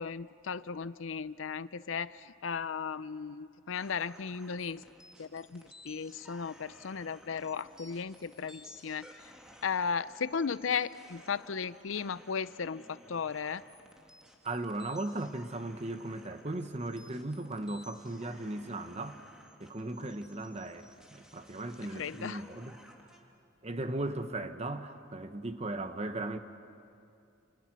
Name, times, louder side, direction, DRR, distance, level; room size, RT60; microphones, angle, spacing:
voice 1, 0.0-4.8 5.2-9.1 9.6-13.6 21.9-22.4, left 6 dB, 80° left, 0.6 m, -36 dB
sound 1, 3.7-23.2, left 1 dB, 5° right, 2.2 m, -56 dB
voice 2, 14.4-19.2 19.6-22.8 23.6-26.4, right 2 dB, 35° right, 1.2 m, -37 dB
29.5 x 29.0 x 6.3 m
head